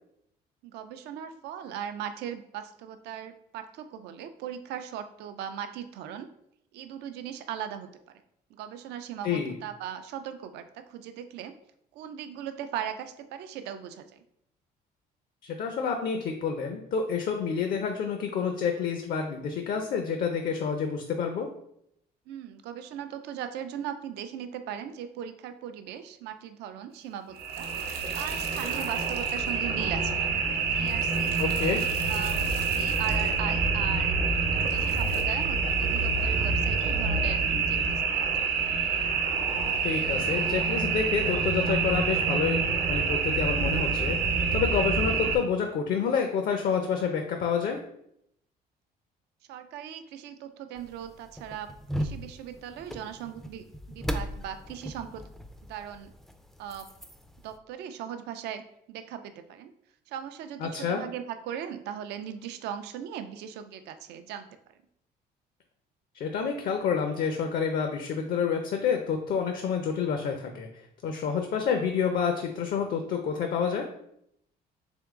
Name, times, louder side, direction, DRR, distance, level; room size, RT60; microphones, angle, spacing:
voice 1, 0.6-6.3 6.7-7.9 8.5-11.5 11.9-14.2 22.3-27.7 28.1-30.4 30.7-31.4 32.1-32.4 32.7-34.3 34.7-37.4 37.7-38.5 49.5-51.7 52.0-55.2 55.7-56.1 56.6-56.9 57.4-58.6 58.9-59.7 60.1-64.5, right 9 dB, 80° right, 9 dB, 0.5 m, -38 dB
voice 2, 15.4-21.5 31.4-31.8 39.8-47.8 60.6-61.0 66.1-73.9, left 6 dB, 60° left, 4 dB, 0.5 m, -28 dB
sound 1, 27.3-45.4, right 5 dB, 60° right, 0.9 m, -27 dB
sound 2, 50.8-57.6, equal, ahead, 0.3 m, -38 dB
3.6 x 2.9 x 3.6 m, 0.74 s
cardioid pair, 110°, 17 cm